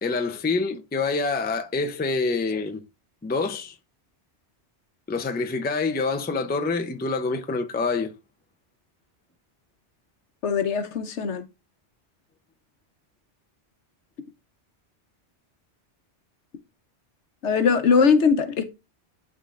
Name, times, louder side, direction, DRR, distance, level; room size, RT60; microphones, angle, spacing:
voice 1, 0.0-2.8 3.2-3.8 5.1-8.1, left 3 dB, 15° left, 0.4 m, -26 dB
voice 2, 10.4-11.4 17.4-18.7, left 5 dB, 75° left, 1.1 m, -21 dB
11.5 x 3.9 x 2.4 m
omnidirectional pair, 1.2 m